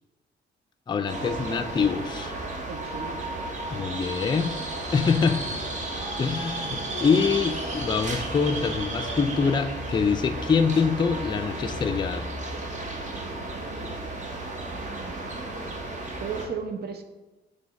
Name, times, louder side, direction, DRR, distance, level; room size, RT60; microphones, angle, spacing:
voice 1, 0.9-2.3 3.7-4.6 4.9-5.4 6.2-12.3, left 5 dB, 20° left, 6 dB, 0.4 m, -25 dB
sound 1, 1.1-16.5, right 2 dB, 35° right, 1.1 m, -33 dB
voice 2, 2.7-3.2 14.7-15.3 16.2-17.0, right 6 dB, 55° right, 6 dB, 0.8 m, -35 dB
5.4 x 3.4 x 5.2 m, 1.1 s
cardioid pair, 90°, 20 cm